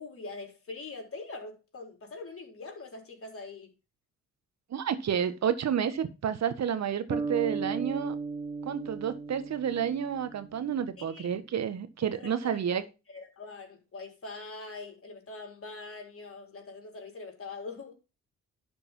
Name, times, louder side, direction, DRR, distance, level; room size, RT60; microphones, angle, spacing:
voice 1, 0.0-3.7 11.0-11.3 12.1-12.6 13.1-17.9, left 3 dB, 40° left, 4.3 m, -43 dB
voice 2, 4.7-8.2 8.6-12.8, right 8 dB, 55° right, 1.6 m, -30 dB
sound 1, 7.1-11.4, right 4 dB, 15° right, 3.5 m, -36 dB
11.0 x 5.3 x 5.5 m
hypercardioid pair, 50°, 33 cm